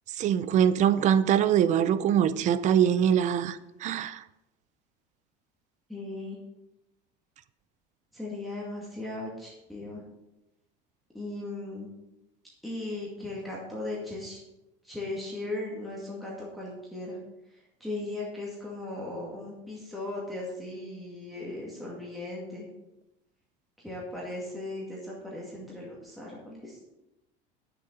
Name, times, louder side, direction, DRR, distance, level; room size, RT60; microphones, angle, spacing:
voice 1, 0.2-4.2, right 9 dB, 35° right, 0.5 m, -23 dB
voice 2, 5.9-6.4 8.1-10.1 11.1-11.9 12.6-14.4 14.8-17.2 17.5-22.7 23.8-26.8, left 2 dB, ahead, 2.2 m, -37 dB
8.5 x 7.0 x 6.8 m
cardioid pair, 150°, 21 cm